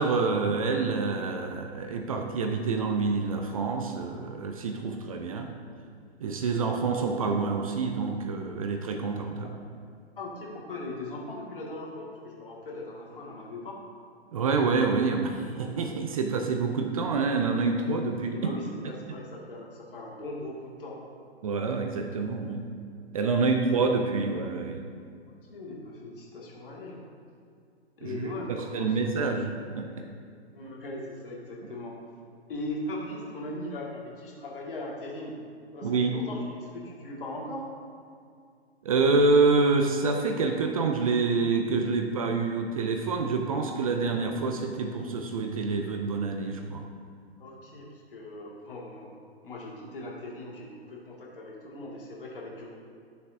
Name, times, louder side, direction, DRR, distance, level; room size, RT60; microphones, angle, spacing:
voice 1, 0.0-5.5 6.2-9.5 14.3-18.5 21.4-22.6 23.1-24.8 28.0-29.9 35.8-36.2 38.8-46.8, right 4 dB, 35° right, 4 dB, 0.5 m, -27 dB
voice 2, 10.2-13.8 18.3-21.0 23.3-23.5 25.5-27.0 28.0-29.3 30.5-32.0 32.5-35.4 35.7-37.6 47.4-49.1 49.4-52.7, left 1 dB, 55° left, -3 dB, 1.9 m, -39 dB
11.5 x 6.8 x 2.6 m, 2.3 s
figure-of-eight pair, 120°, 32 cm